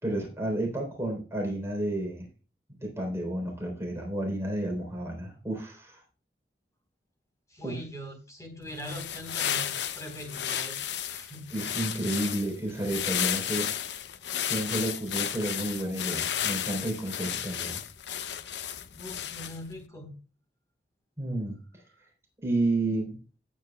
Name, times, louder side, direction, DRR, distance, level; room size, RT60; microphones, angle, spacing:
voice 1, 0.0-2.3 2.8-6.0 7.6-7.7 11.5-13.7 14.4-17.8 21.2-21.8 22.4-23.2, right 1 dB, 15° right, 0 dB, 3.7 m, -31 dB
voice 2, 7.5-10.8 11.1-11.5 19.0-20.2, equal, 20° left, 3 dB, 3.9 m, -41 dB
sound 1, 8.7-19.7, left 9 dB, 85° left, 0.7 m, -33 dB
16.5 x 8.7 x 2.3 m, 0.35 s
head